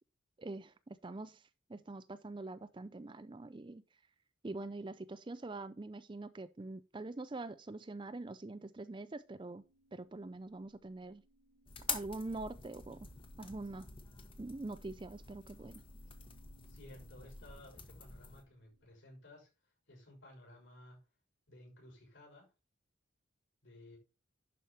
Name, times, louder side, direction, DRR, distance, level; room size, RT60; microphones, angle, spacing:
voice 1, 0.4-3.8 4.4-9.6 9.9-11.2 11.9-13.1 13.4-13.9 14.4-15.8, right 2 dB, 25° right, 0.4 m, -44 dB
sound 1, 8.8-18.9, right 1 dB, 90° right, 3.5 m, -71 dB
sound 2, 11.7-18.4, left 5 dB, 25° left, 1.2 m, -47 dB
voice 2, 16.7-19.5 19.9-21.0 21.5-22.5 23.6-24.0, left 1 dB, 65° left, 6.2 m, -56 dB
11.0 x 5.1 x 4.2 m
head